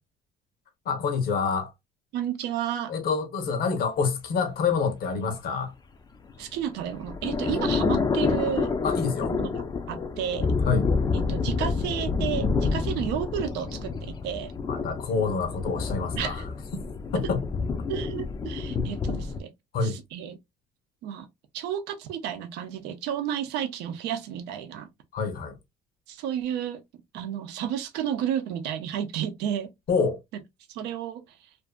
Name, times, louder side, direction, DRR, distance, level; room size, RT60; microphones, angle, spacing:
voice 1, 0.9-1.7 2.9-5.7 7.5-7.6 8.8-9.3 10.6-10.9 14.7-16.4 17.1-17.4 19.7-20.0 25.1-25.6 29.9-30.2, left 5 dB, 65° left, 0.8 m, -27 dB
voice 2, 2.1-2.9 6.4-8.7 9.3-9.5 9.9-10.5 11.1-14.5 16.2-16.5 17.9-19.5 19.8-20.4 21.0-21.3 21.5-24.9 26.1-26.8 27.1-29.7 30.7-31.2, right 9 dB, 90° right, 0.6 m, -31 dB
sound 1, 6.3-19.4, left 4 dB, 25° left, 0.4 m, -28 dB
2.5 x 2.5 x 2.2 m
cardioid pair, 110°, 17 cm